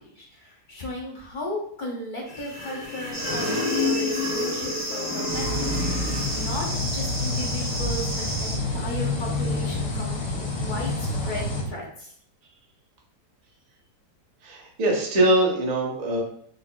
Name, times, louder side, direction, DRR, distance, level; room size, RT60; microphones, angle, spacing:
voice 1, 0.0-12.1, left 1 dB, 50° left, -2 dB, 0.6 m, -36 dB
sound 1, 2.3-6.7, left 3 dB, 35° left, 0.9 m, -29 dB
sound 2, 3.1-8.6, right 1 dB, 25° right, 1.6 m, -33 dB
sound 3, 5.3-11.6, left 2 dB, 85° left, 1.4 m, -28 dB
voice 2, 14.4-16.2, right 1 dB, 45° right, -1 dB, 0.5 m, -22 dB
3.8 x 3.8 x 2.3 m, 0.62 s
omnidirectional pair, 1.8 m